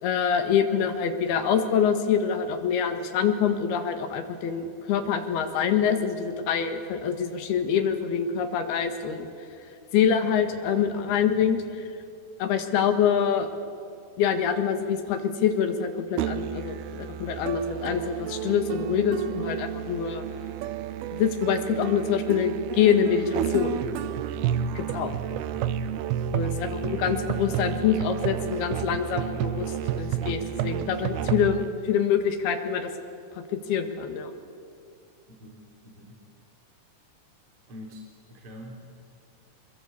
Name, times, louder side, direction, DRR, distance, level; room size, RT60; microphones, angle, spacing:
voice 1, 0.0-9.3 9.9-11.6 12.4-13.5 14.2-20.2 21.1-23.8 24.8-25.1 26.3-29.7 30.0-32.9 33.4-34.3, left 7 dB, 85° left, 7 dB, 3.7 m, -25 dB
Musical instrument, 16.2-31.7, right 10 dB, 85° right, 2.8 m, -31 dB
voice 2, 24.8-25.3 29.2-29.5 35.3-36.2 37.7-39.0, left 1 dB, 35° right, -1 dB, 4.2 m, -45 dB
26.0 x 23.0 x 8.4 m, 2.4 s
omnidirectional pair, 4.4 m